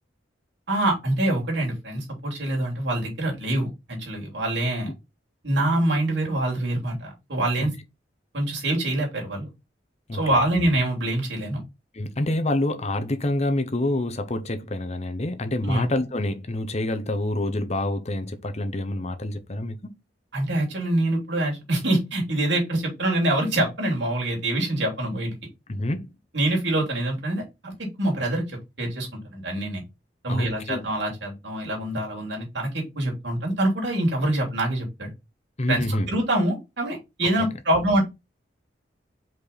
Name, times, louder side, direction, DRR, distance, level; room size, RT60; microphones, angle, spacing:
voice 1, 0.7-4.9 5.4-7.7 8.3-9.5 10.1-11.6 15.6-15.8 20.3-25.3 26.3-29.8 30.2-35.1 35.7-38.0, right 1 dB, 70° right, 3.1 m, -25 dB
voice 2, 11.9-19.9 25.7-26.1 30.3-30.8 35.6-36.1, left 1 dB, 35° left, 0.9 m, -27 dB
5.5 x 4.6 x 4.1 m
head